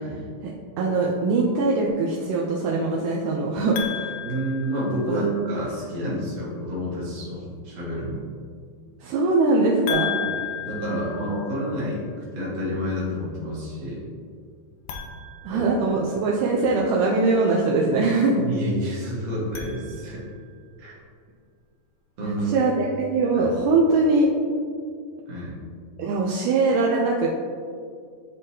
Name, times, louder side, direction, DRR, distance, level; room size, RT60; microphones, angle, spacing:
voice 1, 0.8-4.1 5.1-5.3 9.0-10.1 15.4-18.5 22.2-24.3 26.0-27.3, right 3 dB, 80° right, -3 dB, 1.9 m, -22 dB
sound 1, 3.8-5.5 9.9-11.9 14.8-16.4 19.3-20.5, left 9 dB, 85° left, 2.4 m, -34 dB
voice 2, 4.2-8.2 10.2-10.3 10.6-12.1 12.3-14.0 15.5-15.7 18.4-20.2 20.8-21.0 22.2-22.5 23.3-23.5 25.3-25.5, equal, 55° right, -6 dB, 2.4 m, -29 dB
10.5 x 3.6 x 2.8 m, 2.2 s
omnidirectional pair, 4.2 m